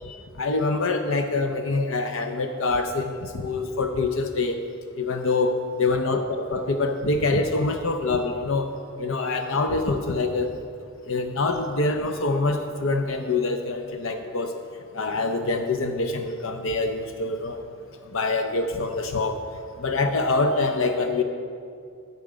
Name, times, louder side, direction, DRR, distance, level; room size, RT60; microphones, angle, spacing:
voice 1, 0.1-4.5 5.0-8.7 9.0-10.5 11.1-14.5 14.9-17.6 18.1-19.4 19.8-21.2, left 3 dB, 60° left, 6 dB, 0.6 m, -25 dB
12.5 x 6.9 x 5.0 m, 2.3 s
head